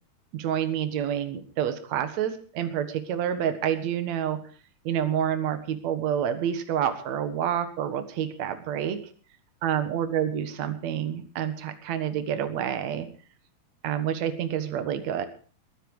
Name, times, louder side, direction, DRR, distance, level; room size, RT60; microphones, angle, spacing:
voice 1, 0.3-4.4 4.8-9.0 9.6-13.1 13.8-15.2, right 9 dB, 55° right, 9 dB, 2.4 m, -28 dB
21.0 x 10.0 x 4.8 m, 0.41 s
omnidirectional pair, 4.2 m